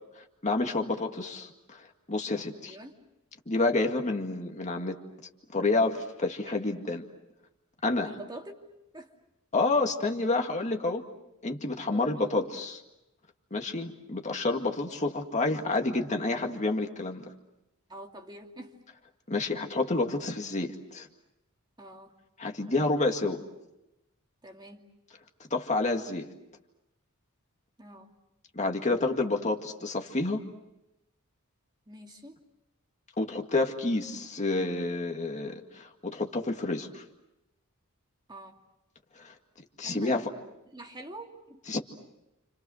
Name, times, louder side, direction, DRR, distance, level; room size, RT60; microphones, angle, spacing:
voice 1, 0.4-2.8 3.5-5.0 5.5-7.0 7.8-8.1 9.5-11.0 11.4-12.8 13.5-17.3 19.3-21.1 22.4-23.4 25.5-26.3 28.5-30.4 33.2-37.0 39.2-39.3 39.8-40.3 41.7-41.8, left 2 dB, 30° left, 3 dB, 2.1 m, -29 dB
voice 2, 2.6-2.9 8.0-8.6 8.9-9.1 11.9-12.5 17.9-18.7 21.8-22.2 24.4-24.9 27.8-28.1 31.9-32.4 38.3-38.6 39.8-41.6, right 1 dB, 20° right, 2 dB, 2.5 m, -46 dB
29.5 x 28.5 x 6.4 m, 0.92 s
head